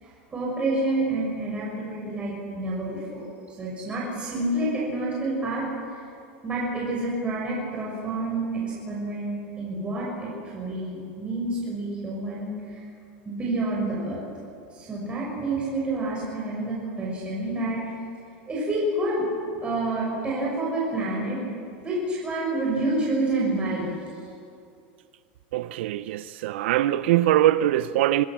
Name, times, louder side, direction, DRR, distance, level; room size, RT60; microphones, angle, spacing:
voice 1, 0.0-3.2 3.6-6.1 6.4-12.8 13.2-14.2 14.7-17.8 18.5-19.2 19.6-21.4 21.8-23.9, right 2 dB, 20° right, 6.2 m, -28 dB
voice 2, 25.5-28.3, right 13 dB, 80° right, 0.6 m, -22 dB
26.5 x 20.5 x 6.1 m
supercardioid pair, 145°, 6 cm